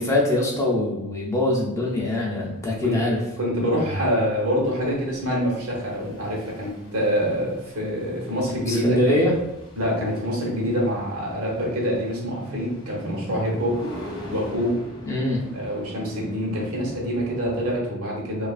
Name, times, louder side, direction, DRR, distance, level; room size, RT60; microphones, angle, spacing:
voice 1, 0.0-3.2 8.7-9.3 15.1-15.4, left 1 dB, 15° left, -3 dB, 0.4 m, -23 dB
sound 1, 1.9-17.8, left 1 dB, 60° left, 0.6 m, -41 dB
voice 2, 3.4-9.1 9.8-13.8 14.3-14.8 15.5-18.5, equal, 80° right, -3 dB, 0.9 m, -25 dB
2.7 x 2.4 x 2.3 m, 0.89 s
head